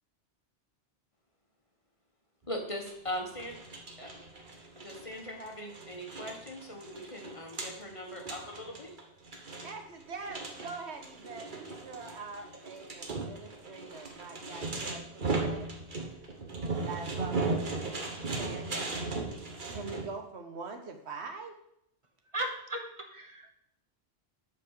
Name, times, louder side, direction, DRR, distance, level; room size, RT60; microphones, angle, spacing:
voice 1, 2.5-3.6 4.0-4.1 4.8-8.9, equal, 30° left, 1 dB, 1.4 m, -40 dB
sound 1, 2.9-20.1, right 3 dB, 50° right, 1.4 m, -37 dB
voice 2, 9.6-15.7 16.9-17.5 18.4-18.9 19.7-21.6, right 4 dB, 80° right, 5 dB, 1.4 m, -43 dB
voice 3, 22.3-23.5, right 1 dB, 30° right, 4 dB, 1.2 m, -36 dB
7.6 x 5.7 x 6.5 m, 0.75 s
omnidirectional pair, 1.1 m